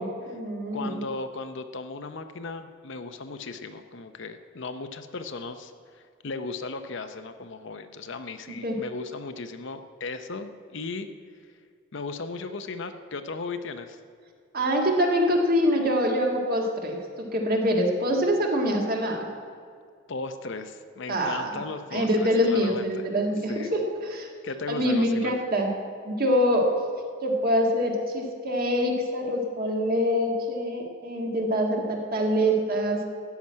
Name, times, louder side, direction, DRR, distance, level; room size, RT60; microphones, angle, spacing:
voice 1, 0.0-1.0 8.6-8.8 14.5-19.3 21.1-21.5 21.9-24.3 24.7-25.7 26.0-26.7 27.2-33.1, equal, 50° right, 1 dB, 1.7 m, -25 dB
voice 2, 0.7-11.1 11.9-14.0 20.1-22.9 23.5-23.8 24.4-25.4, left 3 dB, 65° left, 9 dB, 0.7 m, -36 dB
13.0 x 6.0 x 9.6 m, 2.2 s
head